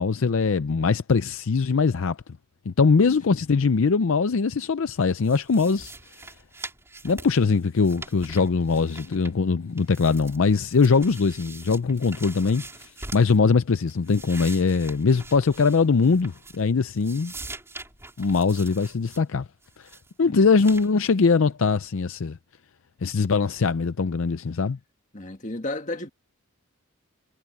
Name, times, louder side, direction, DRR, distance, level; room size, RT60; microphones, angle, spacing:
voice 1, 0.0-2.2 2.7-5.9 7.0-12.6 13.1-17.3 18.2-19.5 20.2-22.4 23.0-24.8, left 4 dB, 65° left, 0.5 m, -21 dB
sound 1, 5.2-9.5 9.8-13.4 13.8-16.7 17.0-19.2 19.6-20.1 20.6-20.9, right 3 dB, 10° right, 3.9 m, -43 dB
voice 2, 25.1-26.1, left 2 dB, 35° left, 1.9 m, -33 dB
head